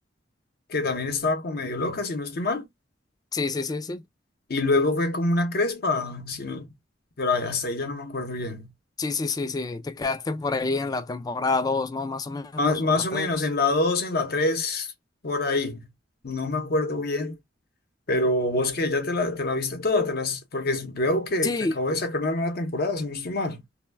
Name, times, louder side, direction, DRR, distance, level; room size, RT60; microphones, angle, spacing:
voice 1, 0.7-2.7 4.5-6.7 7.2-8.7 12.6-14.9 15.2-15.9 16.2-17.4 18.1-23.6, left 2 dB, 55° left, 0.7 m, -26 dB
voice 2, 3.3-4.0 9.0-13.4 21.4-21.7, left 3 dB, 20° left, 0.3 m, -28 dB
2.2 x 2.1 x 3.2 m
head